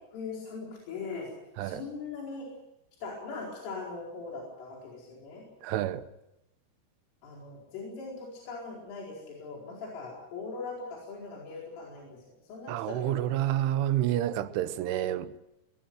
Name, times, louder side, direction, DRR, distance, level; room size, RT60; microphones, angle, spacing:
voice 1, 0.1-1.3 1.6-2.5 3.0-5.5 7.2-13.5, left 4 dB, 70° left, 7.1 m, -40 dB
voice 2, 5.6-6.0 12.7-15.4, right 12 dB, 75° right, 3.2 m, -29 dB
22.5 x 19.5 x 7.8 m
omnidirectional pair, 6.0 m